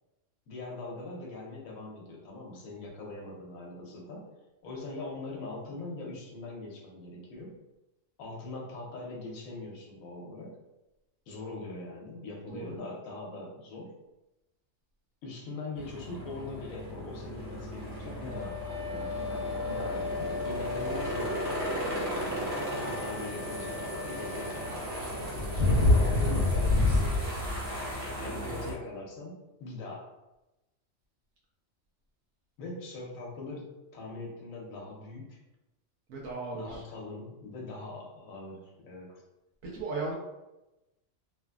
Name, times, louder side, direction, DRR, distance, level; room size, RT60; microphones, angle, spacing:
voice 1, 0.5-4.3 4.6-7.6 8.2-10.6 11.3-13.9 15.2-24.8 25.5-27.6 28.2-30.1 32.6-35.4 36.5-39.2, left 2 dB, 85° left, -2 dB, 1.1 m, -42 dB
sound 1, 15.8-28.7, left 1 dB, 55° right, 1.1 m, -30 dB
Wind instrument woodwind instrument, 18.3-24.8, left 4 dB, 55° left, 0.4 m, -38 dB
voice 2, 28.2-28.8 36.1-36.8 39.6-40.1, right 3 dB, 80° right, -4 dB, 1.1 m, -37 dB
3.0 x 2.5 x 2.3 m, 0.97 s
omnidirectional pair, 1.4 m